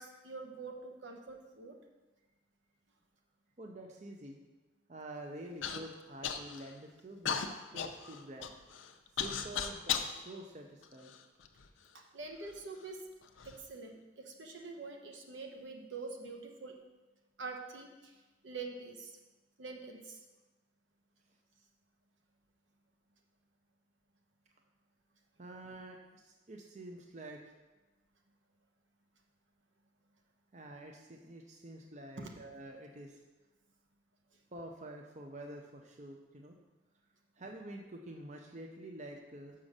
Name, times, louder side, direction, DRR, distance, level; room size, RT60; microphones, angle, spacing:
voice 1, 0.0-1.8 11.9-13.0 13.4-16.8 17.4-19.2 19.6-20.2 32.2-32.3 34.3-34.4, right 3 dB, 75° right, 2 dB, 1.1 m, -45 dB
voice 2, 3.6-4.4 4.9-7.4 7.7-8.5 9.2-11.1 25.4-27.5 30.5-33.2 34.5-36.6 37.4-39.5, right 1 dB, 35° right, 2 dB, 0.6 m, -48 dB
Human voice / Cough, 5.6-5.8 6.2-6.7 7.3-10.1 10.8-11.7 12.4-12.5 13.2-13.6, left 7 dB, 85° left, 0.6 m, -36 dB
6.1 x 5.6 x 6.5 m, 1.2 s
head